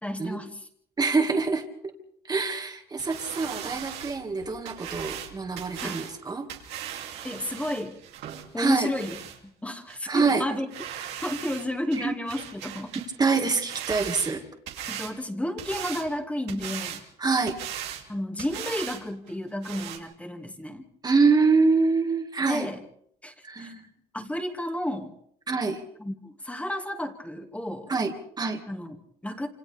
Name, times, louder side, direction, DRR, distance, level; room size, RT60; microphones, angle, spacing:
voice 1, 0.0-0.7 5.8-6.0 7.2-8.0 8.5-10.7 11.2-12.9 14.9-17.0 18.1-20.9 22.4-22.8 23.2-23.7 24.1-25.1 26.0-27.9 28.7-29.5, left 1 dB, 10° left, 4 dB, 2.2 m, -32 dB
voice 2, 1.0-1.9 2.3-6.5 8.6-8.9 10.1-10.4 12.0-12.1 13.2-14.4 17.2-17.6 21.0-22.7 23.4-23.9 25.5-25.8 27.9-28.6, right 4 dB, 25° right, 4 dB, 2.1 m, -25 dB
sound 1, 3.0-9.4 9.9-10.0 10.3-10.4 10.7-11.7 11.9-13.1 13.4-15.1 15.6-16.1 16.5-17.0 17.5-18.1 18.4-19.0 19.3-19.4 19.6-20.0, right 10 dB, 85° right, 2.9 m, -38 dB
27.5 x 27.0 x 3.5 m, 0.66 s
cardioid pair, 110°, 17 cm